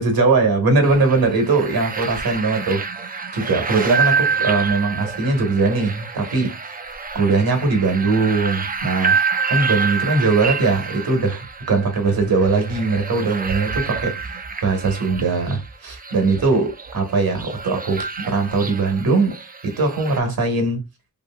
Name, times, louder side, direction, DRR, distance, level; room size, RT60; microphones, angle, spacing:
voice 1, 0.0-2.8 3.3-6.6 7.1-9.2 9.5-11.4 11.7-14.3 14.6-19.4 19.6-20.8, right 3 dB, 60° right, 1.1 m, -20 dB
sound 1, 0.8-20.2, right 5 dB, 25° right, 0.4 m, -27 dB
2.7 x 2.6 x 2.2 m
cardioid pair, 55°, 40 cm